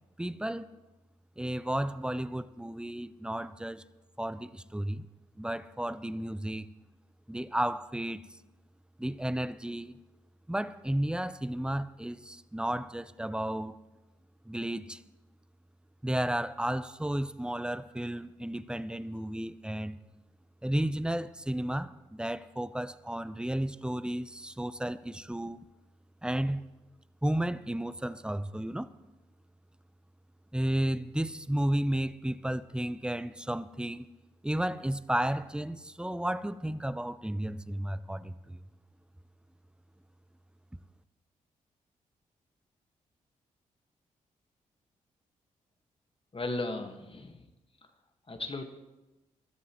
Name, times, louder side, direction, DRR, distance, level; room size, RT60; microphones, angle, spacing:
voice 1, 0.2-0.7 1.4-3.8 4.2-5.1 5.4-6.7 7.3-8.4 9.0-10.0 10.5-13.8 14.5-15.0 16.0-20.0 20.6-25.6 26.2-26.7 27.2-28.9 30.5-34.1 34.4-38.6, right 1 dB, 5° right, 0.7 m, -33 dB
voice 2, 46.3-47.5 48.3-48.6, left 2 dB, 35° left, 1.7 m, -36 dB
23.5 x 13.5 x 3.1 m
hypercardioid pair, 45°, 16 cm